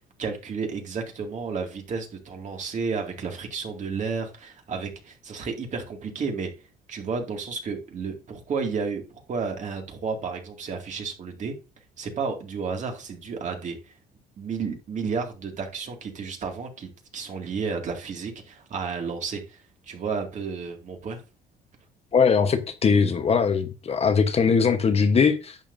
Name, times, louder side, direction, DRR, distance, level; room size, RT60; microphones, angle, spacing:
voice 1, 0.2-6.5 6.9-9.0 9.3-11.5 12.0-13.9 14.4-21.2, right 5 dB, 45° right, 2.3 m, -32 dB
voice 2, 22.1-25.6, left 5 dB, 35° left, 1.1 m, -21 dB
10.5 x 6.9 x 2.7 m
cardioid pair, 110°, 17 cm